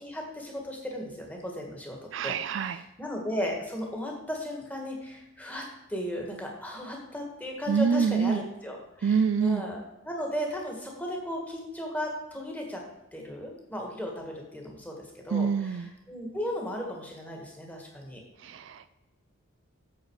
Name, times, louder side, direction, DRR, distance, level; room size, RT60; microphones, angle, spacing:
voice 1, 0.0-2.0 2.2-12.8 13.1-18.2, equal, 5° left, 0 dB, 1.7 m, -36 dB
voice 2, 2.1-2.8 7.7-8.4 9.0-9.6 15.3-15.9 18.4-18.9, right 6 dB, 55° right, 13 dB, 0.3 m, -26 dB
8.6 x 7.3 x 4.8 m, 0.95 s
head